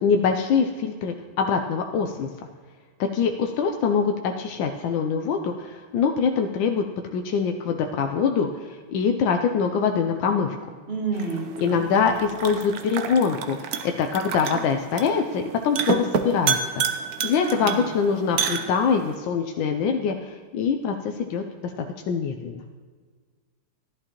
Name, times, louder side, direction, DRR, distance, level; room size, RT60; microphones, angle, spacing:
voice 1, 0.0-2.3 3.0-6.9 7.1-10.7 11.6-16.8 17.2-22.6, left 6 dB, 85° left, 4 dB, 1.4 m, -24 dB
voice 2, 10.9-12.1 17.5-17.9, right 4 dB, 35° right, 0 dB, 1.5 m, -30 dB
sound 1, 11.1-19.1, right 6 dB, 65° right, 1.1 m, -30 dB
15.0 x 11.0 x 2.9 m, 1.5 s
omnidirectional pair, 2.0 m